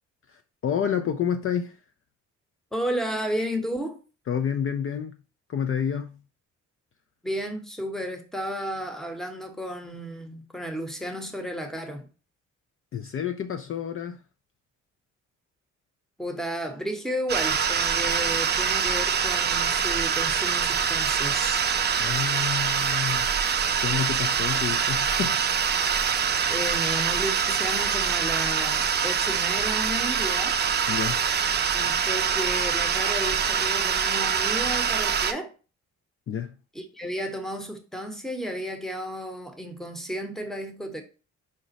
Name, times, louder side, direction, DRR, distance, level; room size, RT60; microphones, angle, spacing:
voice 1, 0.3-1.7 4.3-5.2 5.5-6.2 12.9-14.2 22.0-23.3 23.8-25.4 30.9-31.2 36.3-36.5, left 8 dB, 45° left, 0.5 m, -29 dB
voice 2, 2.7-4.0 7.2-12.1 16.2-21.6 26.5-30.6 31.7-35.5 36.7-41.0, equal, ahead, 0.9 m, -33 dB
flame under kettle, 17.3-35.3, right 7 dB, 35° right, 0.5 m, -24 dB
5.1 x 2.1 x 4.0 m
cardioid pair, 90°, 30 cm